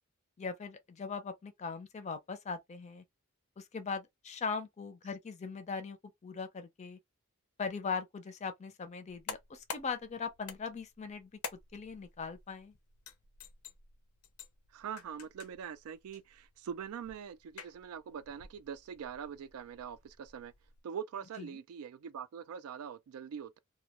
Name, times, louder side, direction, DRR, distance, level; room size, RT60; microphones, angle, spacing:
voice 1, 0.4-3.0 3.6-6.0 6.2-7.0 7.6-11.3 11.7-12.7 21.4-21.5, left 5 dB, 30° left, 0.4 m, -40 dB
sound 1, 9.1-20.8, left 6 dB, 90° left, 0.5 m, -50 dB
voice 2, 14.7-20.5 20.8-23.6, right 7 dB, 80° right, 0.3 m, -43 dB
2.2 x 2.1 x 2.7 m
head